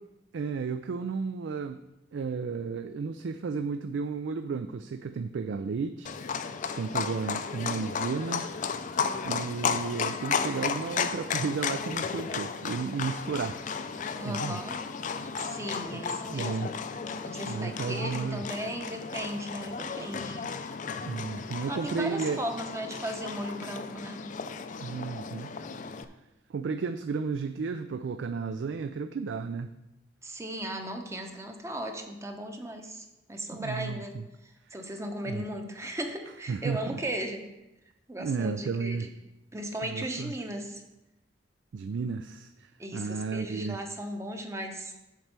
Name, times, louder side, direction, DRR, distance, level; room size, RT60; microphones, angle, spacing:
voice 1, 0.3-1.8 2.1-6.2 6.7-8.5 9.2-13.6 14.2-14.6 15.9-16.0 16.3-16.7 17.4-18.4 21.1-22.4 24.8-25.6 26.5-29.7 33.5-34.2 35.3-35.4 36.5-37.0 38.2-39.1 39.8-40.3 41.7-43.8, right 5 dB, 75° right, 9 dB, 0.4 m, -33 dB
Livestock farm animals working animals, 6.0-26.0, left 6 dB, 45° left, 0.4 m, -34 dB
voice 2, 14.2-14.8 15.4-16.7 17.2-20.5 21.7-24.2 30.2-34.1 34.4-37.4 38.1-39.1 39.5-40.8 42.8-44.9, right 1 dB, 15° right, 4 dB, 0.8 m, -36 dB
7.5 x 4.5 x 6.7 m, 0.95 s
head